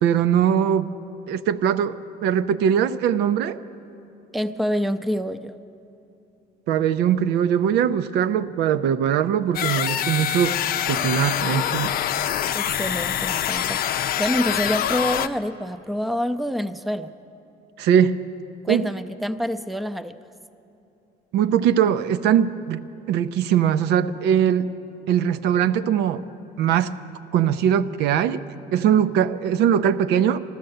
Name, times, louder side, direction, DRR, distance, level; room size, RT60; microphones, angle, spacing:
voice 1, 0.0-0.9 1.3-3.6 6.7-10.6 10.9-11.9 17.8-18.2 18.7-18.8 21.3-24.7 25.1-26.2 26.6-26.9 27.3-28.4 28.7-30.4, right 9 dB, 85° right, 12 dB, 0.6 m, -21 dB
voice 2, 4.3-5.5 12.5-17.1 18.6-20.2, equal, ahead, 11 dB, 0.4 m, -27 dB
sound 1, 9.5-15.3, left 10 dB, 60° left, 0.5 m, -25 dB
14.0 x 12.5 x 7.8 m, 2.8 s
cardioid pair, 110°, 17 cm